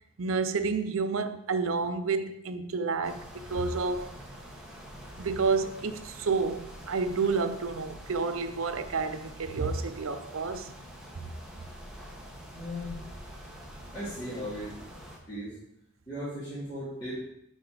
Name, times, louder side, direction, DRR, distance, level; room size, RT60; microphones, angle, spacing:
voice 1, 0.2-4.1 5.2-10.7, right 4 dB, 75° right, 0.6 m, -30 dB
sound 1, 3.0-15.2, equal, 5° right, 1.1 m, -46 dB
voice 2, 12.5-13.0 13.9-14.8 15.3-15.6 16.1-17.2, equal, 20° left, 2.6 m, -37 dB
11.5 x 4.3 x 4.0 m
head